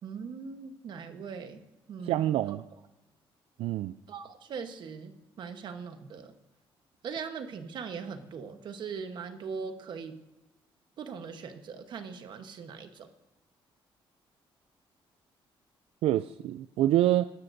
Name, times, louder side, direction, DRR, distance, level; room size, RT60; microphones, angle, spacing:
voice 1, 0.0-2.6 4.1-6.3 7.0-10.2 11.0-13.1, right 6 dB, 50° right, 8 dB, 1.1 m, -40 dB
voice 2, 2.0-2.6 3.6-3.9 16.0-17.3, right 13 dB, 80° right, 13 dB, 0.4 m, -26 dB
19.5 x 12.5 x 2.7 m, 0.99 s
cardioid pair, 155°, 10 cm